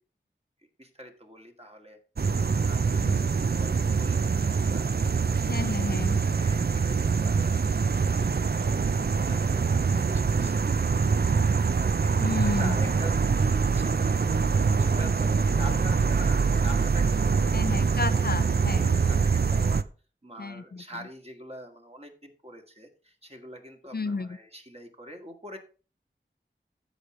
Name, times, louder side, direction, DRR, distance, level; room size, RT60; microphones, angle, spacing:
voice 1, 0.8-2.0 2.3-5.2 6.3-7.6 8.0-9.0 9.3-11.3 11.7-14.4 14.8-18.2 18.6-19.8 20.2-25.6, equal, 30° right, 3 dB, 2.0 m, -44 dB
sound 1, 2.2-19.8, right 5 dB, 55° right, 0.4 m, -24 dB
voice 2, 5.5-6.2 12.2-12.8 15.7-15.8 17.5-18.9 20.4-20.8 23.9-24.4, left 4 dB, 55° left, 12 dB, 0.5 m, -32 dB
sound 2, 12.8-19.2, right 2 dB, 75° right, 2.8 m, -42 dB
14.5 x 5.1 x 3.2 m, 0.36 s
wide cardioid pair, 40°, 20 cm